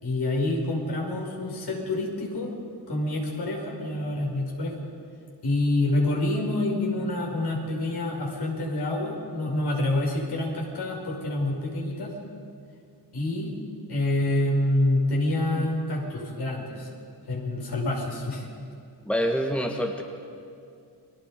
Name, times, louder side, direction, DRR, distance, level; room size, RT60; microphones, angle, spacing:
voice 1, 0.0-2.5 2.9-4.8 5.4-12.1 13.1-13.5 13.9-16.9 17.3-18.5, left 1 dB, 70° left, -1 dB, 5.9 m, -27 dB
voice 2, 19.0-20.0, equal, 5° left, 2 dB, 1.6 m, -26 dB
29.5 x 23.0 x 5.2 m, 2.4 s
wide cardioid pair, 115°, 41 cm